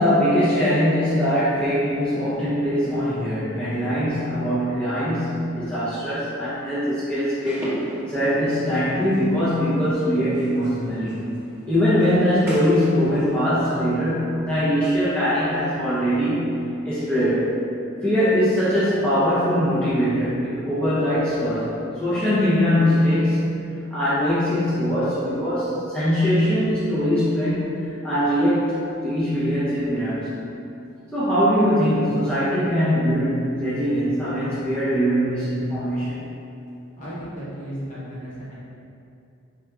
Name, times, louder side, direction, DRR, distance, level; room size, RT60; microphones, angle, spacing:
voice 1, 0.0-7.7 8.1-11.2 11.7-17.6 18.0-30.3 31.1-36.2, equal, 5° left, -13 dB, 0.5 m, -22 dB
sound 1, 7.4-13.4, equal, 15° right, 0.9 m, -38 dB
voice 2, 37.0-38.5, equal, 40° left, -10 dB, 1.0 m, -34 dB
4.5 x 2.6 x 2.2 m, 2.6 s
head